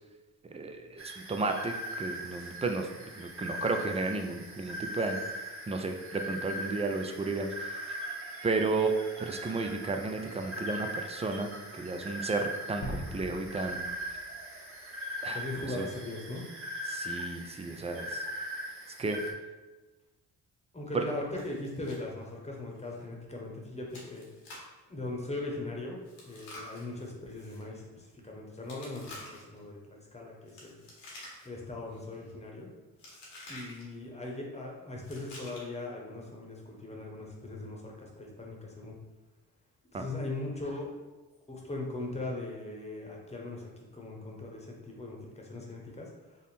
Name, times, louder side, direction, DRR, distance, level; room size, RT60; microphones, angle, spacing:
voice 1, 0.5-2.9 3.1-5.2 5.7-7.9 8.4-13.8 15.2-15.4 15.7-15.9 16.9-18.3 19.0-19.2 20.9-21.1 39.9-40.0, right 3 dB, 15° right, 5 dB, 0.4 m, -33 dB
sound 1, 1.0-19.3, equal, 35° right, 0.9 m, -40 dB
sound 2, 12.8-14.9, equal, 45° left, 0.9 m, -41 dB
voice 2, 15.3-16.4 20.7-24.3 24.9-30.8 31.4-32.7 33.5-39.0 39.9-40.9 41.5-46.1, left 2 dB, 15° left, -1 dB, 1.0 m, -39 dB
Chewing mastication, 21.4-22.0 22.3-22.4 22.9-23.0 23.9-24.8 26.1-27.6 28.6-29.6 30.5-31.6 31.9-32.3 33.0-33.8 35.0-35.8, left 1 dB, 80° left, 1.2 m, -49 dB
3.6 x 2.0 x 4.1 m, 1.2 s
supercardioid pair, 60°, 40 cm